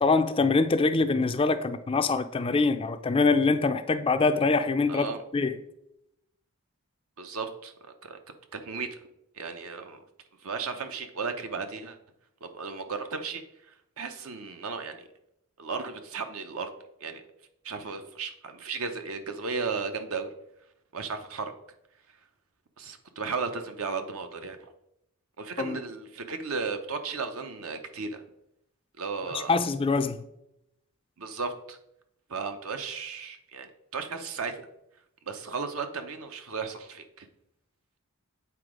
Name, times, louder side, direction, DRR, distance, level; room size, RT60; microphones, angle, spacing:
voice 1, 0.0-5.1 5.3-5.6 25.6-25.8 29.3-30.2, left 3 dB, 25° left, 0.4 m, -24 dB
voice 2, 4.9-5.2 7.2-7.7 8.0-8.2 8.5-9.0 9.3-10.0 10.4-12.0 12.4-13.4 13.7-15.0 15.6-16.7 17.0-17.2 17.6-20.3 20.9-21.5 22.8-24.7 25.4-28.2 29.0-29.5 31.2-31.8 32.3-34.7 35.3-37.3, right 4 dB, 70° right, 0.8 m, -35 dB
8.1 x 4.0 x 5.0 m
head